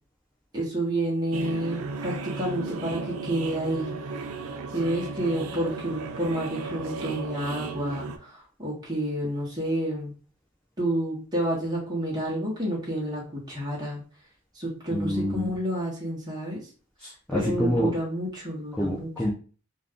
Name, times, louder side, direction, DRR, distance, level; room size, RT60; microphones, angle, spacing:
voice 1, 0.5-3.9 4.7-10.1 10.8-14.0 14.5-16.7 17.3-19.3, right 1 dB, 20° right, -4 dB, 0.9 m, -29 dB
sound 1, 1.3-8.2, right 4 dB, 90° right, 0.4 m, -35 dB
voice 2, 14.9-15.5 17.0-17.9 18.8-19.3, left 1 dB, 5° left, -4 dB, 0.4 m, -27 dB
2.5 x 2.3 x 3.5 m, 0.39 s
head